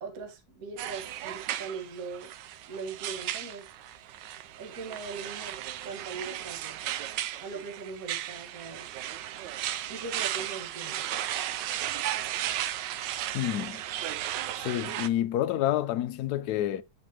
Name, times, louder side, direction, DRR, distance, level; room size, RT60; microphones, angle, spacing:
voice 1, 0.0-2.3 2.7-3.7 4.6-5.6 5.8-6.8 7.4-8.9 9.9-11.0, right 4 dB, 50° right, 1.7 m, -40 dB
sound 1, 0.8-15.1, right 12 dB, 75° right, 1.2 m, -35 dB
voice 2, 13.3-13.8 14.6-16.8, left 12 dB, 70° left, 1.0 m, -28 dB
8.1 x 5.7 x 2.9 m
omnidirectional pair, 2.0 m